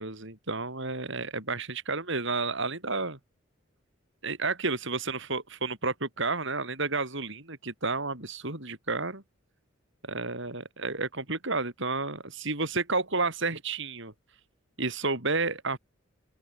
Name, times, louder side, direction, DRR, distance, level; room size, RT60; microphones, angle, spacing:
voice 1, 0.0-3.2 4.2-9.2 10.1-14.1 14.8-15.8, right 3 dB, 65° right, 6.0 m, -31 dB
open air
head